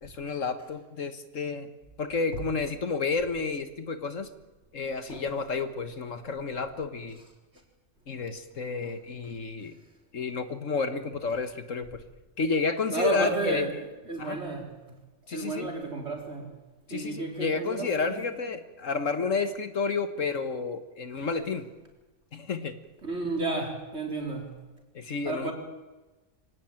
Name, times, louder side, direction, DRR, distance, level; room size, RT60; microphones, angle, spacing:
voice 1, 0.0-1.7 2.0-4.3 4.7-7.2 8.1-9.7 10.1-12.0 12.4-13.6 14.2-14.4 15.3-15.7 16.9-21.7 22.3-22.8 24.9-25.5, left 4 dB, 60° left, 10 dB, 1.7 m, -31 dB
voice 2, 12.9-13.7 14.0-14.7 15.3-16.5 16.9-18.4 23.0-24.6 25.2-25.5, right 3 dB, 45° right, 2 dB, 4.7 m, -32 dB
25.0 x 18.0 x 9.0 m, 1.2 s
omnidirectional pair, 1.5 m